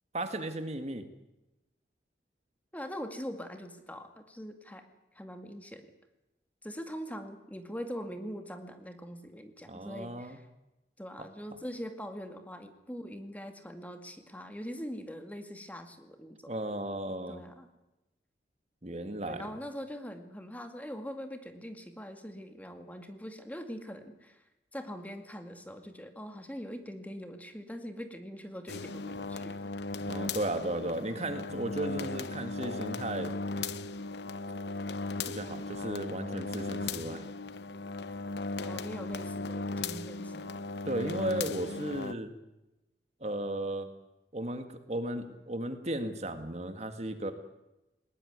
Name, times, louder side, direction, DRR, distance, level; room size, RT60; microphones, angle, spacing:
voice 1, 0.1-1.0 9.7-10.4 16.5-17.4 18.8-19.5 30.0-33.3 35.3-37.3 40.8-42.3 43.2-43.9 44.3-47.3, right 1 dB, 40° right, 8 dB, 2.0 m, -35 dB
voice 2, 2.7-4.9 5.1-5.9 6.6-10.4 11.0-16.5 17.3-17.7 19.2-24.4 24.7-29.7 38.6-40.6, equal, 10° left, 6 dB, 2.2 m, -42 dB
sound 1, 28.7-42.1, left 3 dB, 80° left, 0.9 m, -37 dB
20.5 x 20.0 x 9.6 m, 0.96 s
head